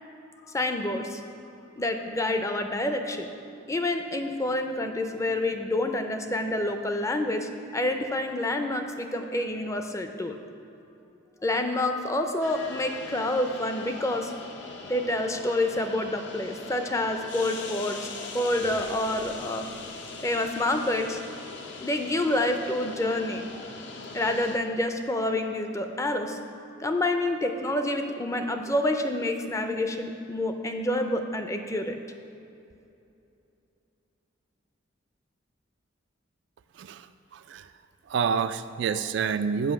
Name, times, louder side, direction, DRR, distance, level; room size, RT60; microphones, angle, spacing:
voice 1, 0.5-1.2 1.8-3.3 3.7-10.4 11.4-18.0 18.3-19.7 20.2-21.2 21.8-23.6 24.1-26.4 26.8-32.0, left 1 dB, 15° left, 6 dB, 0.5 m, -28 dB
sound 1, 12.4-24.6, left 4 dB, 65° left, 0.7 m, -41 dB
voice 2, 37.3-37.7 38.1-39.7, right 6 dB, 65° right, 11 dB, 0.3 m, -28 dB
7.7 x 5.3 x 7.1 m, 2.7 s
head